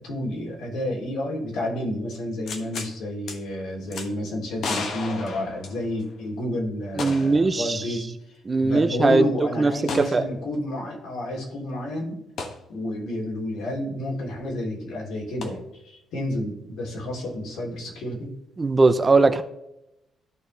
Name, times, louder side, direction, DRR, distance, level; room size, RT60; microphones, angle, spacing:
voice 1, 0.0-8.1 8.6-12.2 12.7-18.3, left 1 dB, 85° left, 3.3 m, -30 dB
sound 1, 2.5-2.9 3.3-3.4 3.9-4.1 4.6-6.1 7.0-7.4 7.7-7.8 9.9-10.1 12.4-12.6 15.4-15.5, left 4 dB, 55° left, 1.3 m, -33 dB
voice 2, 7.0-7.8 8.5-9.3 9.6-9.7 10.1-10.2 18.6-19.4, right 3 dB, 20° right, 0.6 m, -19 dB
13.5 x 4.7 x 3.3 m
cardioid pair, 160°, 0 cm